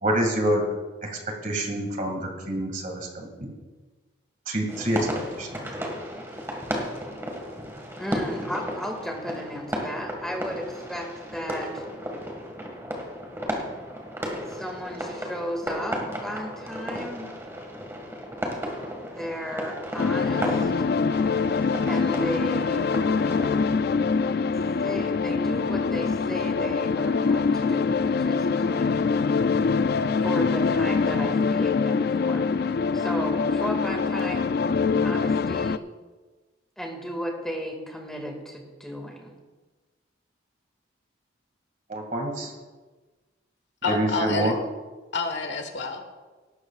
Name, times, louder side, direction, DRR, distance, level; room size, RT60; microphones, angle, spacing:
voice 1, 0.0-0.7 1.0-1.1 1.4-3.6 4.5-5.8 41.9-42.5 43.8-44.5, right 1 dB, 40° right, 1 dB, 2.2 m, -27 dB
sound 1, 4.7-23.6, equal, 15° right, 1.8 m, -34 dB
voice 2, 8.0-11.8 14.5-17.3 19.0-20.7 21.8-22.9 24.8-29.2 30.2-32.5 32.9-34.5 35.0-35.8 36.8-39.3, equal, 5° left, 1 dB, 2.0 m, -34 dB
sound 2, 20.0-35.8, left 5 dB, 55° left, 0.3 m, -24 dB
voice 3, 43.8-44.5 45.1-46.1, left 4 dB, 70° left, 6 dB, 1.4 m, -28 dB
18.0 x 13.0 x 2.4 m, 1.3 s
head